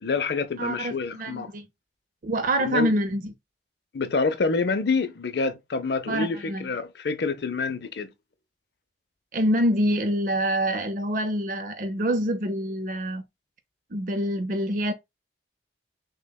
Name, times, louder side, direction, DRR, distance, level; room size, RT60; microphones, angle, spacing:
voice 1, 0.0-1.5 2.6-2.9 3.9-8.1, left 4 dB, 70° left, 0.6 m, -27 dB
voice 2, 0.6-1.7 2.2-3.3 6.1-6.7 9.3-13.2 13.9-14.9, equal, 50° right, 0.5 m, -26 dB
6.3 x 2.2 x 2.2 m
head